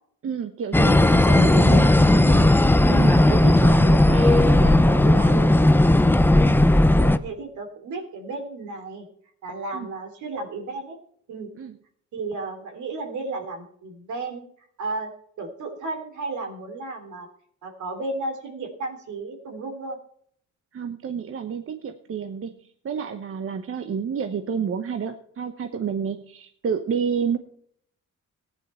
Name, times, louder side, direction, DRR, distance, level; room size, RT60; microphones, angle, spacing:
voice 1, 0.2-2.5 2.9-5.5 9.7-9.9 11.6-11.7 20.7-22.6 22.8-27.4, right 6 dB, 45° right, 8 dB, 1.0 m, -30 dB
sound 1, 0.7-7.2, left 1 dB, 5° left, 0.6 m, -16 dB
voice 2, 7.0-9.1 9.4-11.0 11.3-11.5 12.1-14.4 14.8-15.1 15.4-17.3 17.6-20.0, right 3 dB, 75° right, 4 dB, 3.1 m, -33 dB
15.5 x 10.0 x 4.4 m, 0.63 s
cardioid pair, 90°, 30 cm